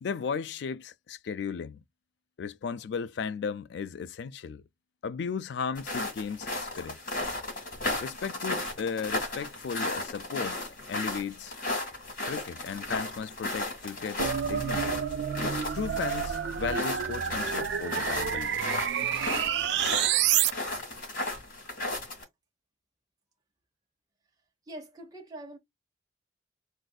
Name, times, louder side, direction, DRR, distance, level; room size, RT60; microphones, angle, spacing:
voice 1, 0.0-1.8 2.4-4.6 5.0-7.0 8.0-10.6 10.9-11.5 12.3-15.1 15.7-18.6, left 6 dB, 70° left, 0.3 m, -35 dB
sound 1, 5.7-22.2, left 2 dB, 45° left, 1.8 m, -35 dB
sound 2, 14.2-20.5, right 9 dB, 70° right, 0.3 m, -29 dB
voice 2, 24.7-25.6, right 1 dB, 20° right, 0.9 m, -43 dB
4.0 x 2.5 x 2.2 m
head